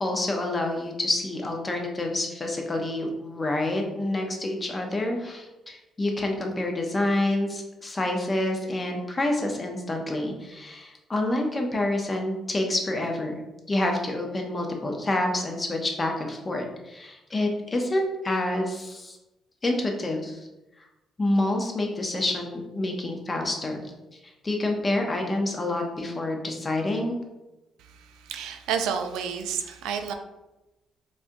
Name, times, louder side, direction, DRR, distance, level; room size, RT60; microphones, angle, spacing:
voice 1, 0.0-13.4 13.7-19.2 19.6-20.5 21.2-23.8 24.2-27.2, left 1 dB, 30° left, 2 dB, 0.7 m, -28 dB
voice 2, 28.3-30.1, right 7 dB, 90° right, 6 dB, 0.3 m, -29 dB
4.2 x 2.3 x 2.6 m, 0.99 s
cardioid pair, 75°, 0 cm